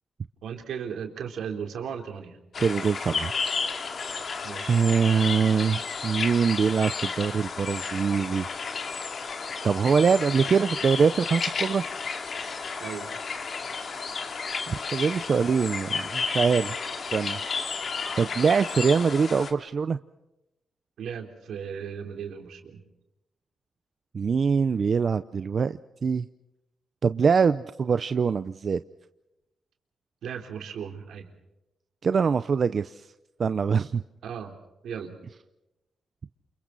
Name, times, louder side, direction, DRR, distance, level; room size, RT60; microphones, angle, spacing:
voice 1, 0.4-2.4 4.4-4.8 12.8-13.1 21.0-22.8 30.2-31.3 34.2-35.2, right 7 dB, 85° right, 4 dB, 3.7 m, -36 dB
sound 1, 2.5-19.5, left 5 dB, 55° left, 2.8 m, -32 dB
voice 2, 2.6-3.3 4.7-8.5 9.6-11.8 14.7-16.8 17.1-17.4 18.2-20.0 24.1-26.3 27.0-28.8 32.0-33.1 33.4-34.0, right 6 dB, 55° right, 12 dB, 0.7 m, -23 dB
30.0 x 28.5 x 4.1 m, 0.93 s
cardioid pair, 80°, 0 cm